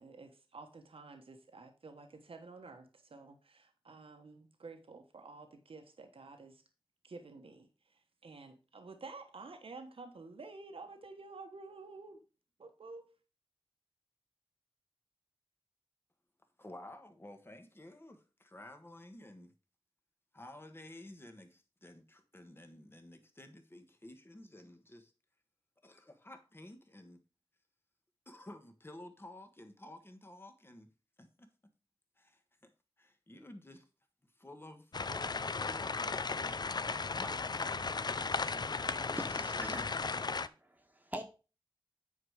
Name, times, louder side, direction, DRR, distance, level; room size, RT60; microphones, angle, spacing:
voice 1, 0.0-6.6 7.0-12.2 12.6-13.1, right 3 dB, 80° right, 1.2 m, -51 dB
voice 2, 16.6-19.5 20.3-25.1 25.8-27.2 28.2-30.9 31.2-31.5 32.2-32.7 33.0-33.9 34.4-36.0 37.1-37.9, left 1 dB, 25° left, 1.4 m, -52 dB
sound 1, 34.9-40.5, left 4 dB, 50° left, 0.5 m, -36 dB
voice 3, 38.8-41.2, right 1 dB, 20° right, 1.4 m, -45 dB
8.8 x 4.9 x 4.9 m
wide cardioid pair, 80°, 9 cm